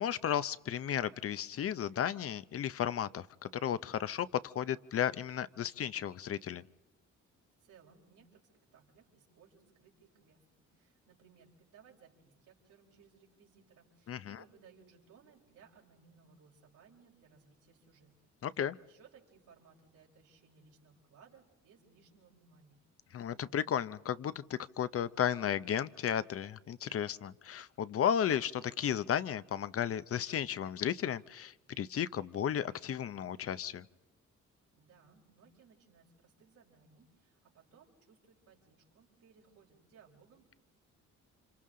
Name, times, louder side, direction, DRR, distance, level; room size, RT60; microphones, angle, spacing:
voice 1, 0.0-6.6 14.1-14.4 18.4-18.8 23.1-33.8, left 9 dB, 50° left, 15 dB, 0.6 m, -34 dB
voice 2, 7.6-18.3 18.8-22.8 34.7-40.6, right 6 dB, 85° right, -1 dB, 4.5 m, -63 dB
29.5 x 25.5 x 3.8 m, 0.96 s
cardioid pair, 90°, 30 cm